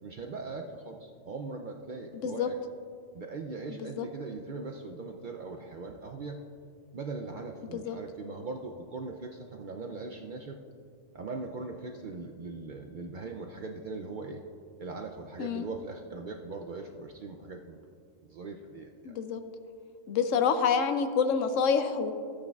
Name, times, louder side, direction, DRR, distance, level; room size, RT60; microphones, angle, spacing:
voice 1, 0.0-2.6 3.1-6.4 6.9-10.6 11.1-14.4 14.8-17.9 18.2-19.2, right 3 dB, 60° right, 3 dB, 0.5 m, -40 dB
voice 2, 3.7-4.1 7.7-8.0 15.4-15.7 19.0-19.4 20.1-22.1, left 6 dB, 90° left, 9 dB, 1.0 m, -27 dB
14.0 x 8.6 x 2.3 m, 2.4 s
omnidirectional pair, 1.3 m